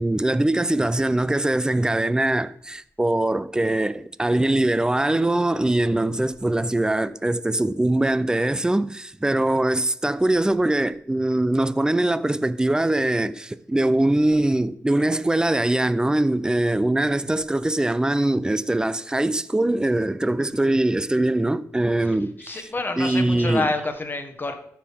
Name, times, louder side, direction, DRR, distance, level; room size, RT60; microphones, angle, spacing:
voice 1, 0.0-22.7 23.0-23.7, right 1 dB, 10° right, 0.5 m, -22 dB
voice 2, 22.4-24.5, left 2 dB, 35° left, 1.3 m, -28 dB
13.0 x 4.8 x 3.5 m
cardioid pair, 65°, 6 cm